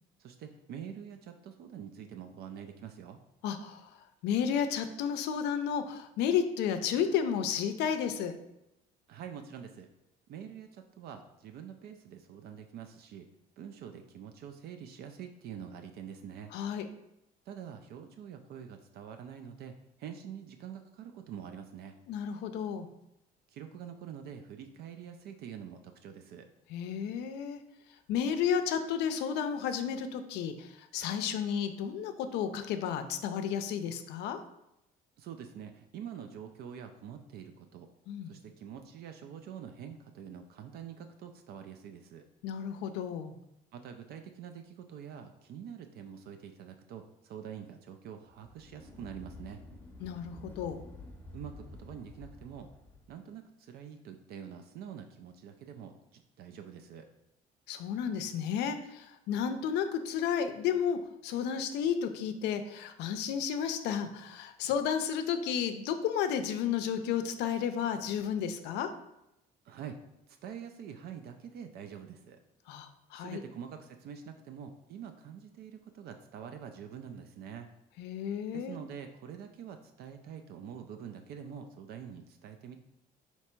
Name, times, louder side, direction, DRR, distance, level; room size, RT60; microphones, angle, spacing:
voice 1, 0.2-3.2 9.1-9.9 10.3-13.2 13.6-16.5 17.5-22.0 23.5-26.5 35.2-37.9 38.3-42.2 43.7-49.6 51.3-52.7 53.1-57.1 69.7-70.0 70.4-72.4 73.1-77.7 78.5-82.8, right 8 dB, 70° right, 6 dB, 0.4 m, -46 dB
voice 2, 3.4-8.4 16.5-16.9 22.1-22.9 26.7-27.6 28.1-34.4 38.1-38.4 42.4-43.3 50.0-50.8 57.7-68.9 72.7-73.4 78.0-78.8, left 8 dB, 85° left, 8 dB, 0.4 m, -32 dB
sound 1, 48.3-53.1, left 2 dB, 10° left, 0.7 m, -50 dB
3.3 x 2.9 x 4.4 m, 0.85 s
cardioid pair, 110°, 17 cm